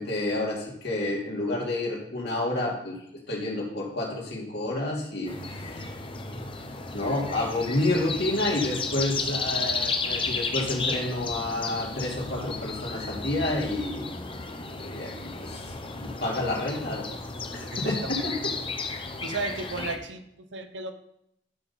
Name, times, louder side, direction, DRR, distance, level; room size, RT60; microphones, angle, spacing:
voice 1, 0.0-3.0 3.3-5.9 6.9-14.1 14.8-17.1 17.5-18.5, left 1 dB, 65° left, -3 dB, 2.7 m, -29 dB
sound 1, 5.2-20.0, left 4 dB, 30° left, 0.9 m, -33 dB
voice 2, 17.7-18.2 19.2-20.9, right 3 dB, 85° right, 8 dB, 0.9 m, -35 dB
10.5 x 6.2 x 4.2 m, 0.76 s
head